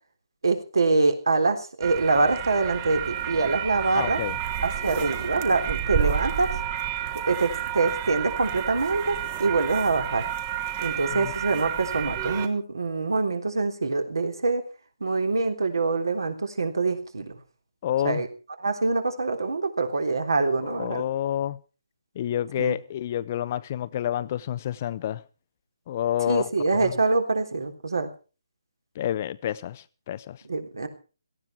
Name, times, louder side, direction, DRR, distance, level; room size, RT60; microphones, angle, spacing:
voice 1, 0.4-4.2 4.6-6.6 7.3-10.2 10.8-14.6 15.0-17.4 18.0-18.3 18.6-21.0 22.6-22.7 26.3-28.1 30.5-30.9, right 3 dB, 70° right, 3.6 m, -25 dB
sound 1, 1.8-12.5, right 10 dB, 20° right, 1.4 m, -30 dB
voice 2, 3.9-4.4 11.1-11.3 17.8-18.2 20.5-21.6 22.2-25.2 25.9-26.5 26.8-26.9 28.9-30.4, left 11 dB, 35° left, 0.7 m, -29 dB
18.0 x 15.0 x 4.5 m
figure-of-eight pair, 145°, 2 cm